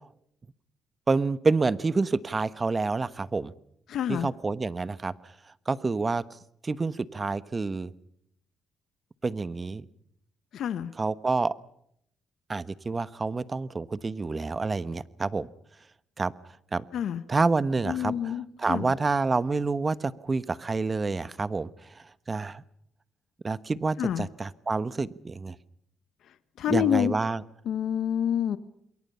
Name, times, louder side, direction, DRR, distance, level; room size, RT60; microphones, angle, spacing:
voice 1, 1.1-3.5 4.1-5.3 5.7-6.2 6.6-7.9 9.2-9.8 10.9-11.5 12.5-15.5 16.2-16.3 16.7-16.8 17.3-22.6 23.4-25.6 26.7-27.4, right 3 dB, 30° right, 16 dB, 1.1 m, -28 dB
voice 2, 3.9-4.3 10.5-10.9 16.9-17.2 17.8-18.9 24.0-24.3 26.6-27.1 27.7-28.6, left 9 dB, 70° left, 12 dB, 1.3 m, -27 dB
28.0 x 22.5 x 5.6 m, 0.72 s
cardioid pair, 90°, 0 cm